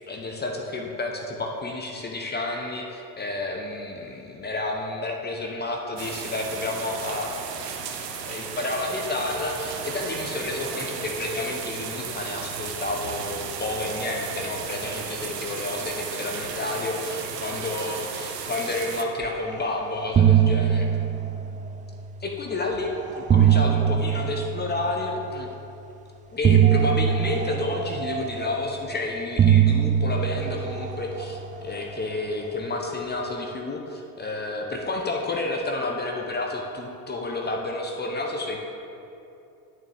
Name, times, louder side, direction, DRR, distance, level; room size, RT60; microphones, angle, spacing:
voice 1, 0.1-20.9 22.2-25.5 26.3-38.6, left 2 dB, 20° left, 1 dB, 0.9 m, -30 dB
sound 1, 6.0-19.0, right 7 dB, 80° right, 0.8 m, -34 dB
sound 2, 19.5-19.7 20.0-22.3 23.0-25.4 26.4-28.9 29.4-32.0, right 9 dB, 15° right, 0.4 m, -22 dB
10.5 x 6.4 x 3.5 m, 2.8 s
hypercardioid pair, 70°, 48 cm